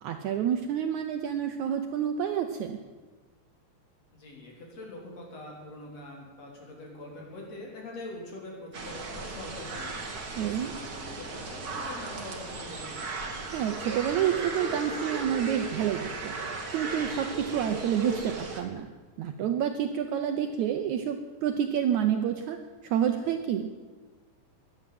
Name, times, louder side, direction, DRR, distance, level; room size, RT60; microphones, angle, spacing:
voice 1, 0.0-2.8 10.4-10.7 13.5-16.3 16.7-18.9 19.2-22.6 22.8-23.7, right 9 dB, 70° right, 7 dB, 1.9 m, -28 dB
voice 2, 4.1-12.9, left 2 dB, 50° left, -1 dB, 4.6 m, -43 dB
sound 1, 8.7-18.6, right 3 dB, 35° right, 1.6 m, -36 dB
16.5 x 11.0 x 7.6 m, 1.3 s
omnidirectional pair, 4.0 m